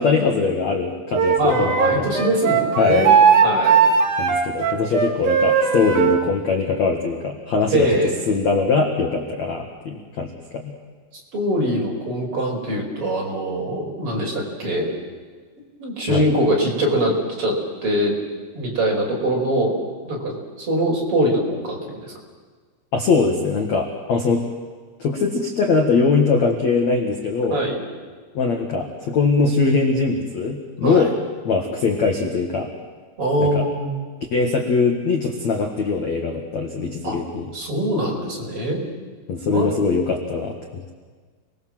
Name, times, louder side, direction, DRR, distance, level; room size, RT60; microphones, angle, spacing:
voice 1, 0.0-2.3 2.8-3.1 4.2-7.9 8.3-10.7 16.1-16.2 22.9-24.4 25.0-27.6 28.3-31.1 31.4-32.7 33.4-33.7 34.3-37.5 39.3-40.9, left 4 dB, 60° left, 3 dB, 1.9 m, -21 dB
Wind instrument woodwind instrument, 1.1-6.2, right 6 dB, 45° right, 3.0 m, -18 dB
voice 2, 1.4-3.1 3.4-3.8 7.7-8.1 11.3-14.9 15.8-17.5 17.8-18.2 18.5-19.7 20.0-22.1 27.5-27.8 30.8-31.1 33.2-34.0 37.0-37.2 37.5-38.8 39.5-39.7, right 1 dB, 25° right, -1 dB, 5.4 m, -22 dB
29.5 x 21.5 x 7.7 m, 1.5 s
omnidirectional pair, 6.0 m